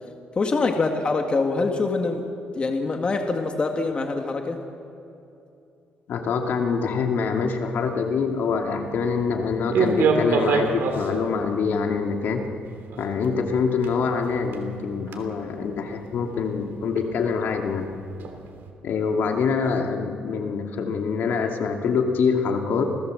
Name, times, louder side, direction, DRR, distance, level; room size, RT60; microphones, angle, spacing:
voice 1, 0.4-2.3 2.6-4.6, left 3 dB, 30° left, 4 dB, 1.7 m, -24 dB
voice 2, 6.1-12.5 13.0-17.9 18.8-23.0, left 5 dB, 65° left, 3 dB, 2.3 m, -25 dB
sound 1, 7.3-18.7, right 4 dB, 75° right, 3.0 m, -30 dB
28.0 x 17.5 x 7.7 m, 2.7 s
cardioid pair, 135°, 4 cm